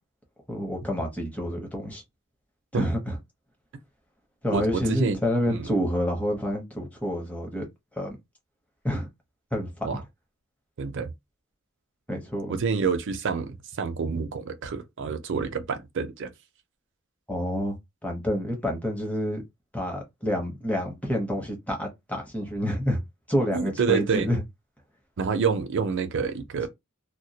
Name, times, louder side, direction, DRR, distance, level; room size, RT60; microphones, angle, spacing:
voice 1, 0.5-2.0 2.7-3.2 4.4-7.7 8.0-8.2 8.8-9.1 9.5-9.9 12.1-12.5 17.3-17.8 18.0-19.4 19.7-23.0 23.3-24.4, equal, 5° left, 0.7 m, -28 dB
voice 2, 4.5-5.2 5.5-5.7 9.8-10.0 10.8-11.1 12.5-16.3 23.5-24.3 25.2-26.7, right 5 dB, 60° right, 0.5 m, -27 dB
2.2 x 2.1 x 2.7 m
head